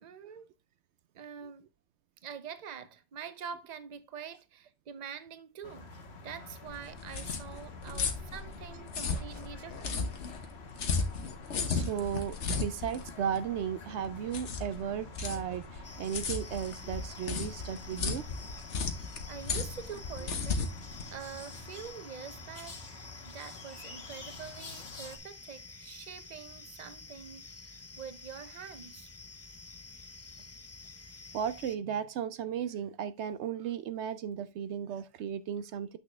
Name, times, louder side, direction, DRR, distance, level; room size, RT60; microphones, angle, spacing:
voice 1, 0.0-0.5 1.1-1.7 2.2-10.1 19.3-20.7 21.1-29.1, right 7 dB, 40° right, 0.8 m, -45 dB
sound 1, 5.6-25.2, left 3 dB, 65° left, 1.5 m, -49 dB
sound 2, 6.7-21.9, left 4 dB, 85° left, 1.4 m, -35 dB
voice 2, 11.7-18.3 31.3-36.0, right 8 dB, 75° right, 0.9 m, -35 dB
sound 3, 15.8-31.8, left 3 dB, 25° left, 0.3 m, -50 dB
8.0 x 6.3 x 3.2 m
omnidirectional pair, 1.2 m